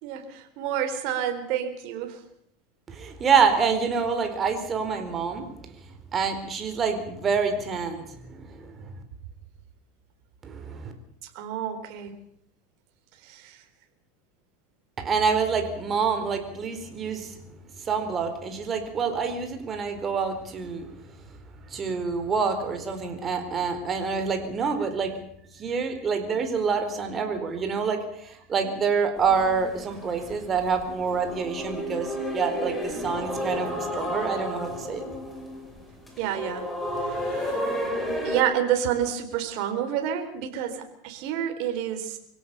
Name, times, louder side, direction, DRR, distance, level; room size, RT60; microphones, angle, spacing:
voice 1, 0.0-2.2 11.3-12.2 13.2-13.6 36.2-36.7 37.0-37.6 38.2-42.2, right 10 dB, 60° right, 6 dB, 4.2 m, -29 dB
voice 2, 2.9-5.7 6.1-8.9 10.4-10.9 15.0-17.4 17.8-20.9 21.7-25.1 25.5-35.0, right 5 dB, 25° right, 6 dB, 4.5 m, -27 dB
sound 1, 29.2-38.4, equal, 5° left, 6.1 m, -32 dB
25.0 x 17.0 x 7.0 m, 0.71 s
supercardioid pair, 125°, 0 cm